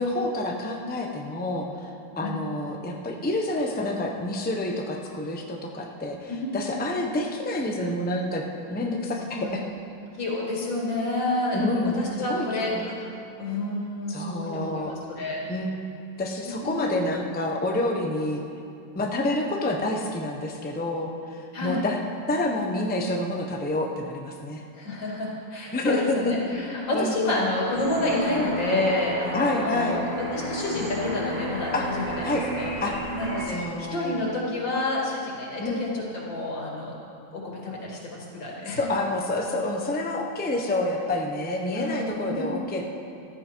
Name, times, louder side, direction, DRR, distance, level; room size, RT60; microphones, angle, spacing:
voice 1, 0.0-1.9 2.2-8.4 8.7-9.6 11.5-12.0 12.3-12.9 14.1-14.9 15.5-15.7 16.2-18.4 18.9-22.0 22.3-24.6 25.7-26.2 26.9-27.5 29.3-30.0 31.7-31.8 32.2-32.5 32.8-32.9 33.5-34.3 35.6-35.8 38.6-42.8, left 1 dB, 10° left, 1 dB, 0.6 m, -28 dB
voice 2, 6.3-6.6 9.3-9.6 10.2-11.7 11.9-13.1 13.4-15.4 16.5-17.0 21.5-21.8 24.7-32.7 33.1-36.9 37.3-38.8 41.7-42.6, left 2 dB, 90° left, -4 dB, 3.3 m, -29 dB
sound 1, 27.6-33.4, equal, 75° right, 4.4 m, -32 dB
14.5 x 13.0 x 4.6 m, 2.5 s
omnidirectional pair, 2.0 m